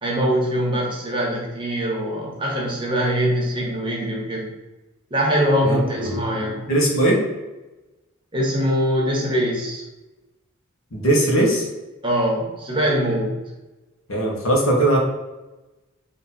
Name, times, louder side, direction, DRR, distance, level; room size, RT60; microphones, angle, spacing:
voice 1, 0.0-4.5 5.1-6.6 8.3-9.8 12.0-13.4, equal, 25° right, -4 dB, 1.2 m, -22 dB
voice 2, 5.6-6.2 6.7-7.2 10.9-11.7 14.1-15.0, right 1 dB, 70° left, -2 dB, 1.3 m, -19 dB
4.3 x 2.9 x 4.1 m, 1.1 s
head